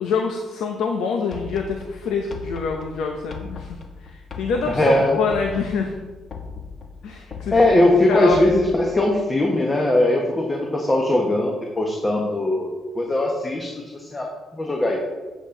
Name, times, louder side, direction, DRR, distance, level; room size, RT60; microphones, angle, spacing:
voice 1, 0.0-5.9 7.0-7.6 8.1-8.6, left 5 dB, 85° left, 3 dB, 0.8 m, -26 dB
sound 1, 1.3-9.1, left 5 dB, 50° left, 1.3 m, -38 dB
voice 2, 4.7-5.2 7.5-14.3 14.5-15.0, left 1 dB, 20° left, 0 dB, 1.3 m, -20 dB
8.5 x 8.2 x 3.9 m, 1.3 s
cardioid pair, 90°, 0 cm